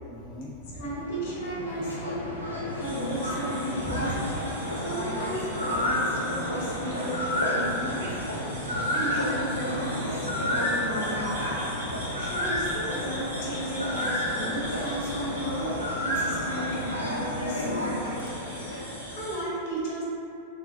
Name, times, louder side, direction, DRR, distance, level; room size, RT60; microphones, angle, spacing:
voice 1, 0.1-0.9 3.8-4.3 7.9-8.0 8.5-9.0 12.4-12.6, equal, ahead, -3 dB, 0.3 m, -39 dB
sound 1, 0.7-19.1, left 1 dB, 85° left, 0.3 m, -31 dB
voice 2, 0.7-2.3 2.7-4.1 4.8-8.1 8.9-11.3 12.2-15.7 16.0-17.9 19.1-20.0, right 1 dB, 55° left, -5 dB, 0.6 m, -34 dB
sound 2, 2.8-19.4, equal, 70° right, 0.7 m, -42 dB
2.3 x 2.2 x 2.4 m, 2.7 s
figure-of-eight pair, 90°, 0 cm